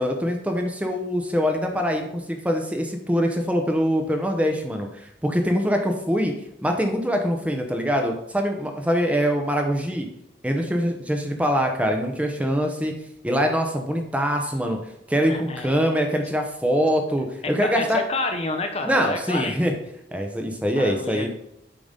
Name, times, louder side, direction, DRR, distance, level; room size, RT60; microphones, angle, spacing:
voice 1, 0.0-6.3 6.6-10.1 10.4-12.9 13.2-14.8 15.1-18.0 18.8-19.7 20.1-21.3, equal, 5° right, 3 dB, 0.8 m, -23 dB
voice 2, 15.3-16.0 17.4-19.7 20.8-21.3, left 2 dB, 35° left, 5 dB, 0.7 m, -29 dB
8.6 x 3.9 x 5.3 m, 0.78 s
head